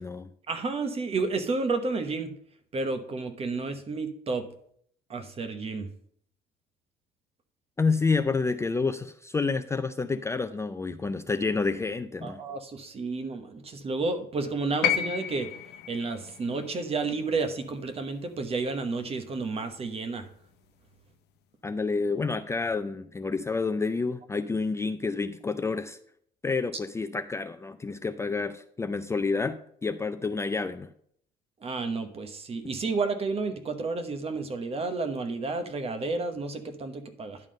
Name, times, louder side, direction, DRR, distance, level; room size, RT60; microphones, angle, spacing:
voice 1, 0.5-2.3 2.7-4.5 5.1-5.9 12.2-15.5 15.9-20.3 31.6-37.4, right 3 dB, 35° right, 8 dB, 1.0 m, -31 dB
voice 2, 7.8-12.4 21.6-26.0 26.4-30.9, left 4 dB, 15° left, 9 dB, 0.4 m, -29 dB
sound 1, 14.8-19.0 20.2-20.3, left 9 dB, 75° left, 0.7 m, -33 dB
10.5 x 3.7 x 6.4 m, 0.65 s
cardioid pair, 110°, 17 cm